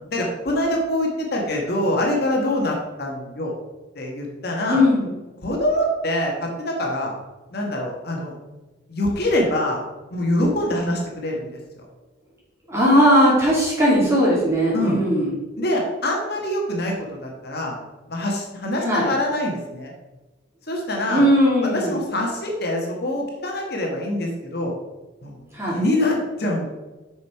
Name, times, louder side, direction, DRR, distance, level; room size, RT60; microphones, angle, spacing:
voice 1, 0.1-3.5 3.9-4.8 5.4-7.1 7.5-8.3 8.9-9.8 10.1-11.8 14.7-15.0 15.6-17.8 18.1-19.9 20.7-21.2 21.6-24.7 25.2-25.5 25.7-26.7, left 1 dB, 55° left, 0 dB, 1.5 m, -24 dB
voice 2, 4.7-5.0 12.7-15.3 18.8-19.1 21.1-21.9 25.5-25.8, equal, 15° right, -5 dB, 2.9 m, -18 dB
6.8 x 6.3 x 4.6 m, 1.1 s
head